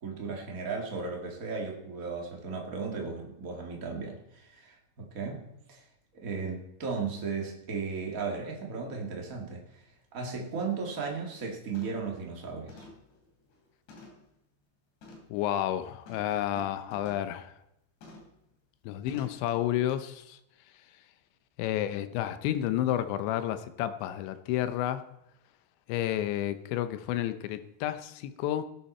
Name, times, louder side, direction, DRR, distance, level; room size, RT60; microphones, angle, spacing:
voice 1, 0.0-5.8 6.2-9.7 10.1-12.9, right 5 dB, 50° right, 0 dB, 1.0 m, -36 dB
sound 1, 9.9-10.0 10.5-10.7 11.1-11.4 11.7-12.1 12.7-14.3 15.0-15.4 16.1-17.3 18.0-18.4 19.1-19.5 19.9-20.0, left 2 dB, 70° left, 5.1 m, -52 dB
voice 2, 15.3-17.5 18.9-20.4 21.6-25.0 25.9-28.6, left 12 dB, 90° left, 11 dB, 3.1 m, -31 dB
17.5 x 10.0 x 4.3 m, 0.82 s
omnidirectional pair, 5.1 m